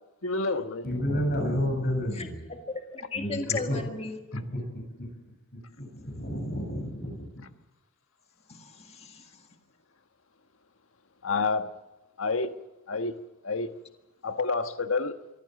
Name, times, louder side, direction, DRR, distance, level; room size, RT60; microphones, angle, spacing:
voice 1, 0.2-0.9 11.2-11.7 12.2-12.5 12.9-13.1 13.4-13.7 14.2-15.2, left 3 dB, 90° left, 1.4 m, -28 dB
voice 2, 0.8-2.4 3.1-3.8 5.8-7.4, equal, 50° left, 7.8 m, -30 dB
voice 3, 2.1-4.2 8.5-9.4, left 3 dB, 30° left, 1.9 m, -36 dB
24.0 x 15.0 x 7.6 m
head